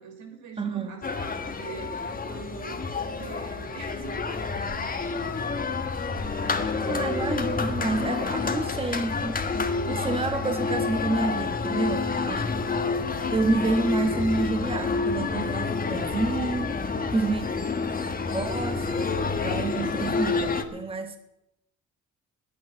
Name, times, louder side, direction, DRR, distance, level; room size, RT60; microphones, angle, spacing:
voice 1, 0.0-7.4 12.0-13.1 17.5-17.7, right 5 dB, 75° right, 5 dB, 3.6 m, -45 dB
voice 2, 0.6-1.0 6.9-9.4 9.9-12.4 13.3-16.8 17.1-17.4 18.3-18.9 19.4-21.2, right 3 dB, 20° right, 7 dB, 1.2 m, -28 dB
sound 1, 1.0-20.6, left 4 dB, 30° left, 1.4 m, -29 dB
10.5 x 9.5 x 9.9 m, 0.88 s
cardioid pair, 90°, 30 cm